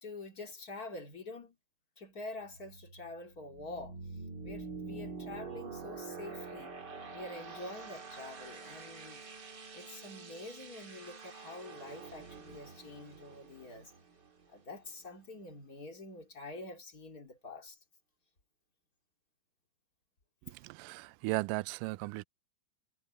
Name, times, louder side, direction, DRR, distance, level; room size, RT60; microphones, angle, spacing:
voice 1, 0.0-1.6 2.0-4.0 4.4-6.7 7.1-9.3 9.7-13.9 14.5-17.8, left 2 dB, 25° left, 2.8 m, -46 dB
sound 1, 2.4-15.1, right 4 dB, 35° right, 2.5 m, -47 dB
voice 2, 20.4-22.2, right 23 dB, 80° right, 1.9 m, -36 dB
omnidirectional pair, 4.2 m